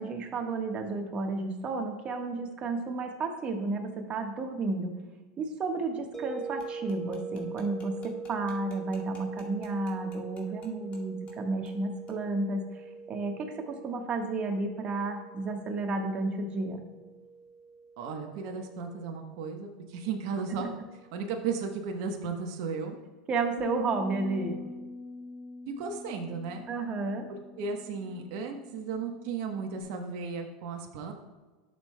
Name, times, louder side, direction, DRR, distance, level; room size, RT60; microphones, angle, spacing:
voice 1, 0.0-5.0 5.4-16.8 20.6-20.7 23.3-24.6 26.7-27.3, right 3 dB, 35° right, 4 dB, 1.3 m, -32 dB
sound 1, 6.1-21.1, right 4 dB, 10° left, 1.2 m, -43 dB
spoon in a cup, 6.6-11.0 11.3-11.4 11.6-11.8 12.1-12.2, left 3 dB, 40° left, 2.1 m, -54 dB
voice 2, 18.0-20.7 21.1-23.0 25.8-26.7 27.3-31.1, right 5 dB, 60° right, 3 dB, 1.0 m, -35 dB
Bass guitar, 23.6-29.8, left 3 dB, 70° left, 1.7 m, -44 dB
12.0 x 6.5 x 2.2 m, 1.3 s
hypercardioid pair, 105°, 3 cm